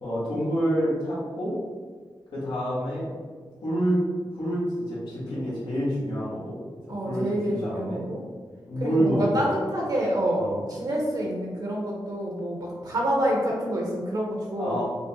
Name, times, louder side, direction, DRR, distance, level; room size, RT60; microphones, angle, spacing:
voice 1, 0.0-1.5 2.3-3.2 3.6-4.0 4.3-6.6 7.1-8.0 8.7-9.7 10.3-10.6 14.6-14.8, equal, 90° left, -10 dB, 1.1 m, -27 dB
voice 2, 6.9-8.2 8.8-14.8, right 1 dB, 60° right, -2 dB, 0.7 m, -27 dB
5.3 x 2.0 x 2.7 m, 1.6 s
wide cardioid pair, 85°, 8 cm